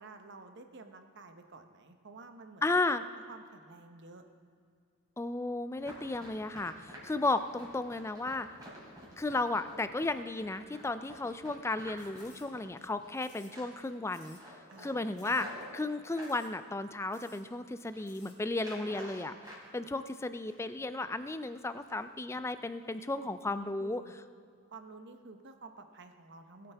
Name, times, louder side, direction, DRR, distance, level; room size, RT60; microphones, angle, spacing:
voice 1, 0.0-2.6 2.9-4.2 14.7-15.4 23.2-24.1 24.7-26.7, right 3 dB, 50° right, 7 dB, 0.9 m, -51 dB
voice 2, 2.6-3.0 5.2-8.5 9.2-14.4 14.8-15.5 15.7-19.3 19.7-24.0, left 2 dB, 10° left, 11 dB, 0.3 m, -34 dB
Run, 5.8-13.2 13.5-13.9 14.2-16.4 16.9-17.5 17.8-18.1 18.5-19.7 20.0-20.8 21.1-21.3 21.7-22.0 22.4-22.5 23.0-23.1 23.5-23.6, equal, 15° right, 3.2 m, -50 dB
sound 1, 12.0-12.8 13.1-13.8 14.1-14.5 14.7-14.8 15.1-15.5 15.8-15.9 16.2-16.6 16.8-16.9 17.1-17.4 17.8-18.4, left 5 dB, 30° left, 2.0 m, -59 dB
19.5 x 8.8 x 3.4 m, 2.1 s
head